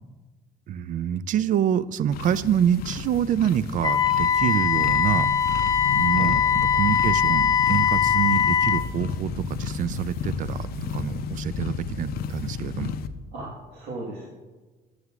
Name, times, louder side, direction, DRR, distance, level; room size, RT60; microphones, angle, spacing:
voice 1, 0.7-5.3 5.9-6.4 6.7-13.0, right 9 dB, 50° right, 16 dB, 0.4 m, -26 dB
sound 1, 2.1-13.1, left 5 dB, 65° left, 0.5 m, -32 dB
Wind instrument woodwind instrument, 3.8-8.9, left 8 dB, 20° left, 0.7 m, -21 dB
voice 2, 13.3-14.3, right 2 dB, 90° right, -4 dB, 1.5 m, -36 dB
11.0 x 7.8 x 2.4 m, 1.3 s
cardioid pair, 110°, 17 cm